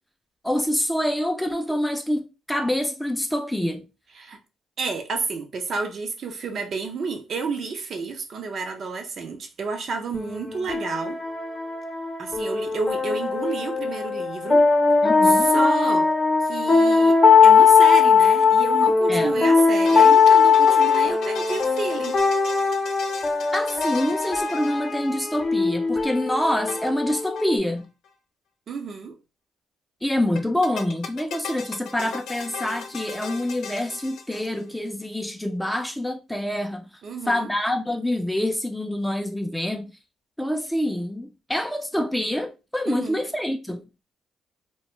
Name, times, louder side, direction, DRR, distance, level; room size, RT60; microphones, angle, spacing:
voice 1, 0.4-3.9 15.0-15.5 19.1-19.3 23.5-27.9 30.0-36.9 37.3-39.9 40.4-43.8, left 1 dB, 5° left, 0.4 m, -26 dB
voice 2, 4.8-11.2 12.2-14.7 15.2-16.1 16.4-22.2 28.7-29.2 37.0-37.5 42.9-43.2, right 4 dB, 55° right, 0.6 m, -30 dB
sound 1, 10.1-27.6, left 5 dB, 30° left, 0.7 m, -19 dB
sound 2, 19.6-25.4 26.7-27.5 27.8-27.9 28.0-28.1 30.4-34.9, left 6 dB, 75° left, 0.5 m, -37 dB
2.3 x 2.2 x 2.9 m
cardioid pair, 90°, 0 cm